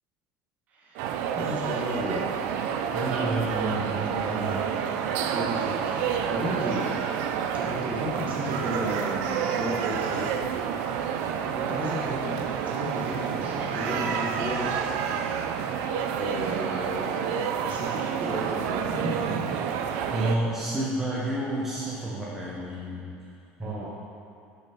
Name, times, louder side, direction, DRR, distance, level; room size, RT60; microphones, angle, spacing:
voice 1, 0.7-1.1 1.3-2.4 5.3-6.9 7.5-10.3 10.8-10.9 11.5-15.0 16.1-19.8 23.6-23.8, right 1 dB, 40° right, -5 dB, 1.6 m, -33 dB
sound 1, 0.9-20.4, right 7 dB, 70° right, 0.5 m, -29 dB
voice 2, 2.9-4.6 20.1-23.0 23.6-23.7, right 1 dB, 10° right, -6 dB, 1.1 m, -30 dB
7.3 x 5.5 x 5.1 m, 2.5 s
cardioid pair, 140°, 4 cm